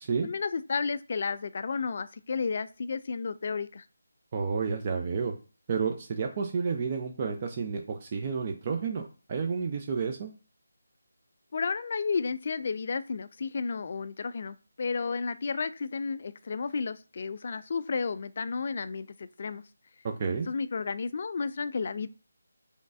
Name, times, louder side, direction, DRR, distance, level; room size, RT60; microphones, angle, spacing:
voice 1, 0.2-3.9 11.5-19.6 20.5-22.1, left 5 dB, 40° left, 14 dB, 0.3 m, -32 dB
voice 2, 4.3-5.3 5.7-9.0 9.3-10.3 20.0-20.5, right 5 dB, 30° right, 3 dB, 0.5 m, -30 dB
5.1 x 3.2 x 2.5 m, 0.35 s
figure-of-eight pair, 155°, 0 cm